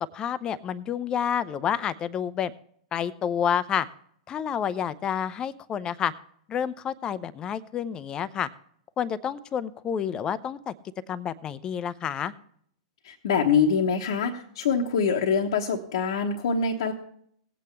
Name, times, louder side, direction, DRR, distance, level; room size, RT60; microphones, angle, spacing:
voice 1, 0.1-2.5 2.9-3.9 4.3-6.1 6.5-8.5 9.0-10.7 11.1-12.3, left 8 dB, 25° left, 16 dB, 0.6 m, -29 dB
voice 2, 13.0-16.9, left 5 dB, 60° left, 1 dB, 1.0 m, -24 dB
18.0 x 8.4 x 3.3 m, 0.64 s
figure-of-eight pair, 105°, 3 cm